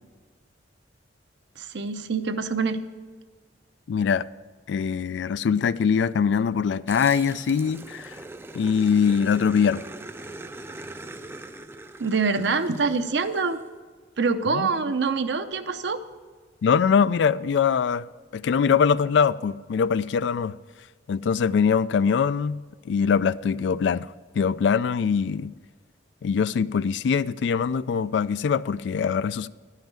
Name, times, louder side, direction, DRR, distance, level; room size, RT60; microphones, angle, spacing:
voice 1, 1.6-2.8 12.0-13.6 14.2-16.0, right 4 dB, 65° right, 0.7 m, -25 dB
voice 2, 3.9-4.3 4.7-8.1 8.5-9.8 14.5-14.7 16.6-18.1 18.3-20.6 21.1-22.6 22.9-24.1 24.3-25.5 26.2-29.5, left 6 dB, 70° left, 0.3 m, -22 dB
Growling, 6.9-13.6, right 2 dB, 15° right, 0.4 m, -41 dB
10.5 x 5.7 x 8.7 m
head